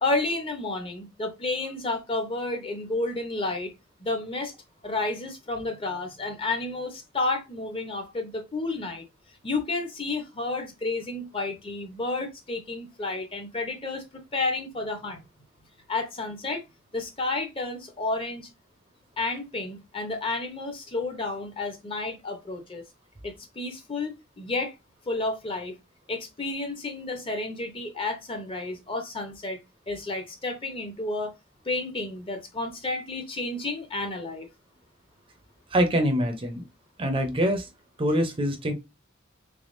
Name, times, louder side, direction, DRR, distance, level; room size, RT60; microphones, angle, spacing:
voice 1, 0.0-3.7 4.0-4.5 4.8-9.1 9.4-15.2 15.9-16.6 16.9-18.5 19.2-22.8 23.2-24.7 25.1-25.8 26.1-29.6 29.9-31.3 31.6-34.5, left 2 dB, 25° left, 0.7 m, -31 dB
voice 2, 35.7-36.6 37.0-37.7 38.0-38.7, equal, 25° right, 0.6 m, -24 dB
3.4 x 3.4 x 2.5 m
head